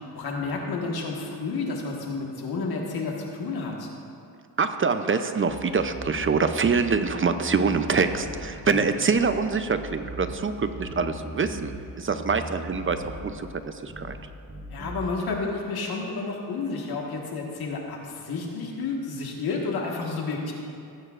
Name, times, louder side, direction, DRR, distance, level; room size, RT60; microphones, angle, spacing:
voice 1, 0.1-3.9 8.7-8.8 14.7-20.5, left 4 dB, 85° left, -1 dB, 1.6 m, -31 dB
voice 2, 4.6-14.2, right 5 dB, 35° right, 9 dB, 0.6 m, -25 dB
sound 1, 5.5-7.0 7.3-8.5 9.1-9.4 9.7-11.8 12.1-13.3 13.9-14.2 14.5-15.1, right 1 dB, 20° right, 1.9 m, -39 dB
17.0 x 8.7 x 2.5 m, 2.5 s
cardioid pair, 80°, 37 cm